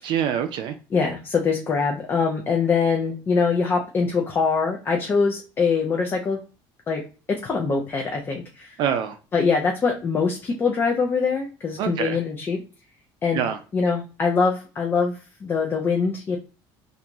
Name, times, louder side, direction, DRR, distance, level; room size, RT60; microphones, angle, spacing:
voice 1, 0.0-0.8 8.8-9.2 11.8-12.2 13.3-13.6, right 8 dB, 55° right, 0.3 m, -25 dB
voice 2, 0.9-6.4 6.9-7.0 7.3-8.7 9.3-12.6 13.2-13.5 13.7-16.4, left 5 dB, 20° left, 0.4 m, -23 dB
2.5 x 2.3 x 2.9 m
cardioid pair, 165°, 10 cm